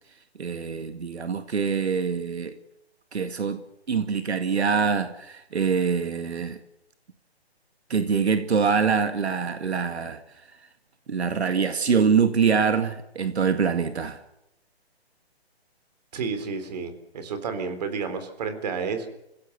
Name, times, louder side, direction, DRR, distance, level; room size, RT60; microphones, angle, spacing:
voice 1, 0.4-2.6 3.1-3.6 3.9-6.6 7.9-10.2 11.1-14.2, right 6 dB, 80° right, 2.1 m, -24 dB
voice 2, 16.1-19.1, right 5 dB, 40° right, 3.7 m, -31 dB
26.5 x 16.5 x 8.0 m
hypercardioid pair, 160°, 32 cm